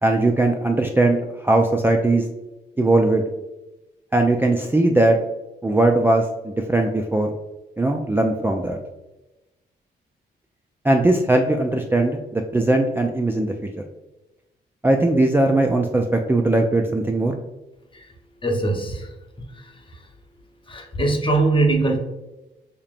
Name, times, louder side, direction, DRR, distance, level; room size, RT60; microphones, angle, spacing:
voice 1, 0.0-2.2 2.8-3.2 4.1-5.2 5.6-7.3 7.8-8.8 10.8-13.8 14.8-17.4, right 2 dB, 10° right, 2 dB, 0.4 m, -19 dB
voice 2, 18.4-19.1 19.5-20.1 20.7-22.0, right 2 dB, 25° left, 2 dB, 0.9 m, -22 dB
5.0 x 2.8 x 2.5 m, 1.0 s
cardioid pair, 60°, 19 cm